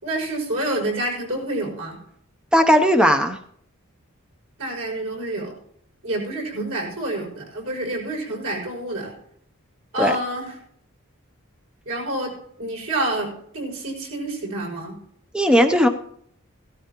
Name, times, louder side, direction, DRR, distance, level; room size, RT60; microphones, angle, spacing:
voice 1, 0.0-2.0 4.6-5.5 6.0-9.1 9.9-10.6 11.9-15.0, right 1 dB, 80° right, -1 dB, 6.0 m, -28 dB
voice 2, 2.5-3.4 10.0-10.1 15.3-15.9, equal, 5° right, 5 dB, 0.6 m, -16 dB
16.5 x 14.0 x 3.0 m, 0.67 s
head